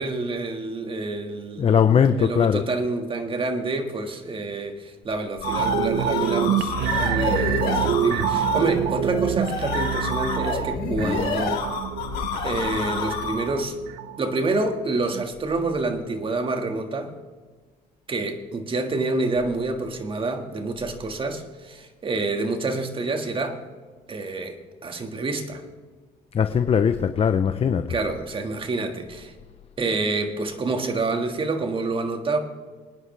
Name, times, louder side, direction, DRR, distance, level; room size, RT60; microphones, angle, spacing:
voice 1, 0.0-11.6 12.4-13.8 14.2-17.1 18.1-23.6 24.1-25.6 27.9-29.3 29.8-32.4, right 3 dB, 30° right, 5 dB, 1.7 m, -28 dB
voice 2, 1.6-2.6 26.3-27.9, left 7 dB, 35° left, 9 dB, 0.7 m, -20 dB
sound 1, 5.1-13.6, left 6 dB, 80° left, 4.2 m, -29 dB
sound 2, 5.4-14.7 15.1-15.2, right 9 dB, 80° right, 0.9 m, -26 dB
24.5 x 9.8 x 3.3 m, 1.4 s
cardioid pair, 110°, 17 cm